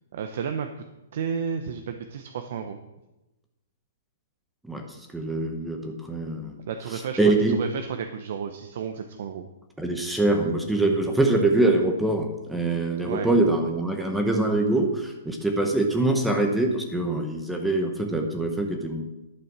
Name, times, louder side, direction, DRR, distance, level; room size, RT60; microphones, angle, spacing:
voice 1, 0.1-0.7 1.1-2.8 6.7-9.5 13.0-13.3, right 7 dB, 55° right, 7 dB, 0.8 m, -32 dB
voice 2, 4.6-6.6 6.9-7.6 9.8-19.1, right 2 dB, 5° right, 3 dB, 0.9 m, -24 dB
11.0 x 6.9 x 6.1 m, 1.0 s
hypercardioid pair, 165°, 0 cm